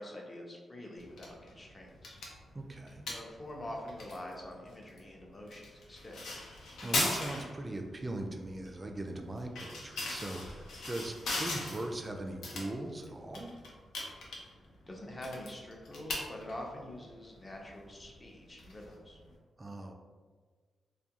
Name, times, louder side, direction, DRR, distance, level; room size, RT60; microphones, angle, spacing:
voice 1, 0.0-2.2 3.1-6.2 14.9-19.2, left 1 dB, 30° left, -1 dB, 0.5 m, -45 dB
sound 1, 1.0-19.3, left 2 dB, 90° left, 0.5 m, -41 dB
voice 2, 2.5-3.1 6.8-13.5 19.6-19.9, right 1 dB, 25° right, 3 dB, 0.3 m, -40 dB
2.4 x 2.2 x 2.8 m, 1.5 s
cardioid pair, 90°, 0 cm